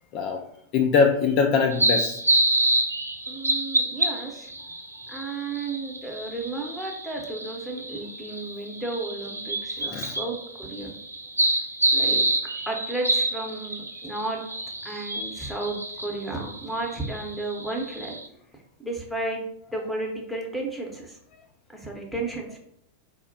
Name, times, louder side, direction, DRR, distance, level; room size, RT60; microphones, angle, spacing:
voice 1, 0.7-2.2 9.8-10.2, left 5 dB, 40° left, 3 dB, 0.3 m, -22 dB
sound 1, 1.7-18.3, right 1 dB, 85° right, 0.3 m, -28 dB
voice 2, 3.3-4.5 5.1-10.9 11.9-12.3 12.7-14.4 14.8-18.1 18.8-19.4 19.7-21.2 21.7-22.6, right 2 dB, 5° left, 1 dB, 0.8 m, -33 dB
4.5 x 2.1 x 2.7 m, 0.73 s
figure-of-eight pair, 90°, 0 cm